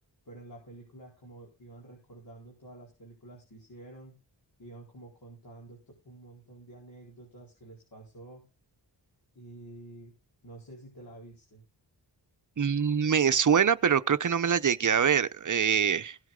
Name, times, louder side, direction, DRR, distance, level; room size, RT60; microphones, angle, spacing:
voice 1, 0.2-4.2 4.6-8.4 9.3-10.1 10.4-11.6, right 2 dB, 55° left, 4.7 m, -49 dB
voice 2, 12.6-16.2, right 7 dB, 45° right, 0.7 m, -24 dB
17.0 x 7.9 x 3.8 m
wide cardioid pair, 75°, 43 cm